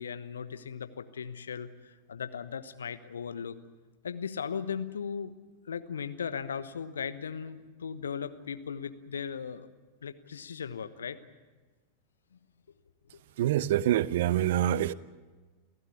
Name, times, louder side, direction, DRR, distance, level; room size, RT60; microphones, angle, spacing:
voice 1, 0.0-3.6 4.0-5.3 5.7-9.7 10.0-11.2, left 7 dB, 70° left, 12 dB, 1.2 m, -37 dB
voice 2, 13.4-14.9, right 12 dB, 55° right, 20 dB, 0.7 m, -26 dB
28.5 x 15.5 x 8.4 m, 1.3 s
figure-of-eight pair, 90°, 0 cm